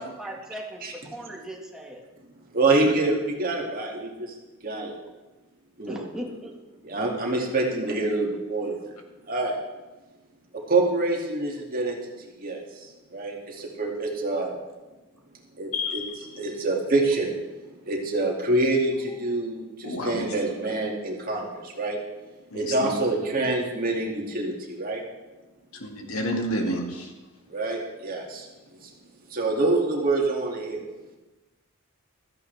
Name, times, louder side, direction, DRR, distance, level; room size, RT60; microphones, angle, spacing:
voice 1, 0.0-2.0 5.9-6.5 19.1-19.2, right 1 dB, 5° right, -2 dB, 1.8 m, -38 dB
voice 2, 2.5-4.3 4.6-4.9 5.8-6.1 6.8-8.9 9.3-9.6 10.7-14.6 15.6-16.0 16.3-17.3 17.8-22.0 22.5-25.0 27.5-28.5 28.8-28.9 29.3-30.8, right 2 dB, 45° right, -1 dB, 2.5 m, -26 dB
voice 3, 15.7-16.1 19.8-20.3 22.5-22.9 25.8-27.1, left 1 dB, 85° left, 2 dB, 2.1 m, -30 dB
16.0 x 14.0 x 3.5 m, 1.1 s
head